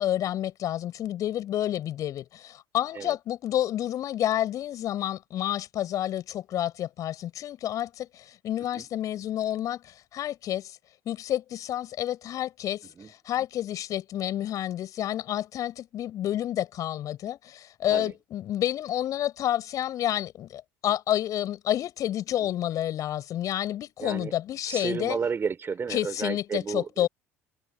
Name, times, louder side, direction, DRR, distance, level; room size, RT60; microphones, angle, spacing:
voice 1, 0.0-10.8 11.1-25.2 25.9-27.1, left 12 dB, 50° left, 7.1 m, -29 dB
voice 2, 24.0-24.3 24.6-27.1, right 6 dB, 30° right, 6.2 m, -32 dB
figure-of-eight pair, 60°, 8 cm